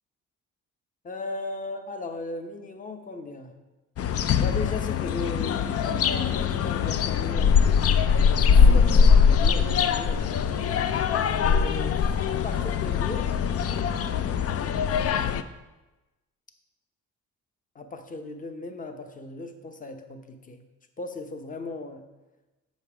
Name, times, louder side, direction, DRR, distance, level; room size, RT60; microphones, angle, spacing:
voice 1, 1.0-3.5 4.4-7.7 8.3-10.7 11.4-13.3 14.5-14.9 17.7-20.6 21.0-22.1, left 2 dB, 25° left, 7 dB, 0.9 m, -37 dB
sound 1, 4.0-15.4, left 6 dB, 50° left, 0.5 m, -22 dB
7.1 x 5.3 x 5.0 m, 1.1 s
cardioid pair, 90°, 30 cm